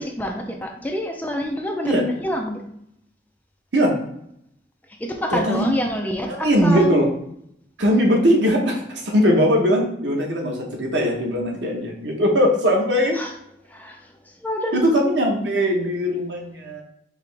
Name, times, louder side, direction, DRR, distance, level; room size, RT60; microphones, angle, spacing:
voice 1, 0.0-2.7 5.0-7.1 13.1-13.3 13.7-14.8, left 1 dB, 10° left, 2 dB, 0.5 m, -27 dB
voice 2, 5.3-5.6 6.3-7.1 7.8-13.2 14.7-16.8, equal, 90° right, 1 dB, 1.0 m, -20 dB
4.9 x 2.9 x 3.4 m, 0.74 s
head